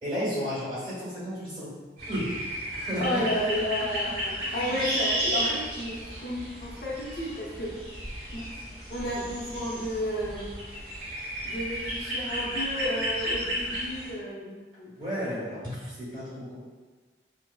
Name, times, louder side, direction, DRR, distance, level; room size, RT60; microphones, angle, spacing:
voice 1, 0.0-1.7 2.1-2.3 2.7-3.2 3.8-4.8 15.0-16.6, equal, 25° right, -9 dB, 1.2 m, -33 dB
sound 1, 2.0-14.1, equal, 55° right, 1.4 m, -33 dB
voice 2, 3.0-5.9 6.2-7.7 8.3-8.4 8.9-10.6 11.4-14.9, equal, 65° left, -5 dB, 0.7 m, -32 dB
4.5 x 2.0 x 2.3 m, 1.3 s
head